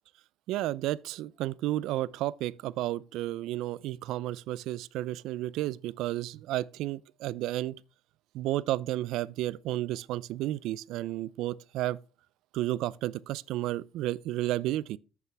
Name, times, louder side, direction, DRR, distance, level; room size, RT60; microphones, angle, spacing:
voice 1, 0.5-7.8 8.3-12.0 12.5-15.0, right 15 dB, 75° right, 0.5 m, -32 dB
11.0 x 8.4 x 3.4 m
cardioid pair, 105°, 0 cm